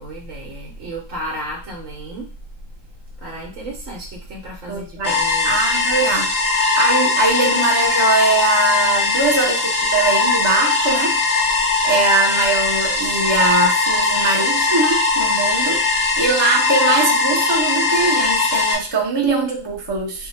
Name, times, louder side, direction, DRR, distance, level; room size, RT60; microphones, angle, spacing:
voice 1, 0.0-2.3 3.2-5.6, right 1 dB, 65° right, -2 dB, 1.2 m, -33 dB
voice 2, 4.7-11.2 11.8-15.8 16.2-20.3, right 3 dB, 35° right, 0 dB, 0.4 m, -21 dB
sound 1, 5.0-18.7, left 4 dB, 55° left, 0.4 m, -19 dB
2.7 x 2.2 x 4.1 m, 0.34 s
omnidirectional pair, 1.5 m